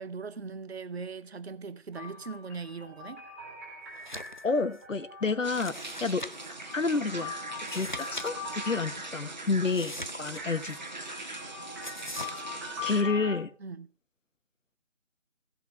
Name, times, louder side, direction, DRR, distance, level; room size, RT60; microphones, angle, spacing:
voice 1, 0.0-3.2 13.6-13.9, right 5 dB, 55° right, 0.8 m, -40 dB
sound 1, 1.9-5.7 6.4-9.5 10.4-13.4, left 3 dB, 10° right, 2.4 m, -42 dB
sound 2, 4.0-4.4 4.7-4.8 5.5-6.6 7.5-8.3 8.6-8.7 9.7-10.8 11.8-12.4, left 1 dB, 40° left, 0.5 m, -41 dB
voice 2, 4.4-6.3 6.7-7.3 7.7-10.8 11.2-11.4 12.8-13.5, left 4 dB, 85° left, 1.2 m, -30 dB
sound 3, 5.4-13.0, right 2 dB, 35° right, 1.5 m, -41 dB
17.0 x 5.9 x 5.3 m
figure-of-eight pair, 170°, 37 cm